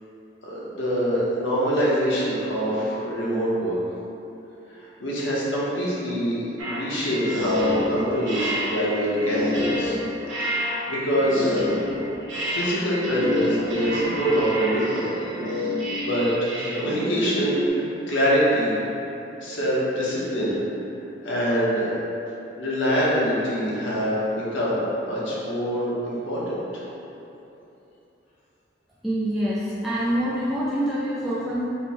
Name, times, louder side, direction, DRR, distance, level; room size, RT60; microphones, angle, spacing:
voice 1, 0.4-3.8 4.7-10.0 10.5-12.0 12.4-15.1 16.0-18.8 19.4-20.5 21.2-21.9 22.6-24.8 25.0-26.8, equal, 75° left, -7 dB, 0.9 m, -25 dB
sound 1, 6.6-17.7, left 1 dB, 85° right, 0.8 m, -28 dB
voice 2, 29.0-31.6, equal, ahead, -11 dB, 0.3 m, -25 dB
3.4 x 2.2 x 4.3 m, 3.0 s
head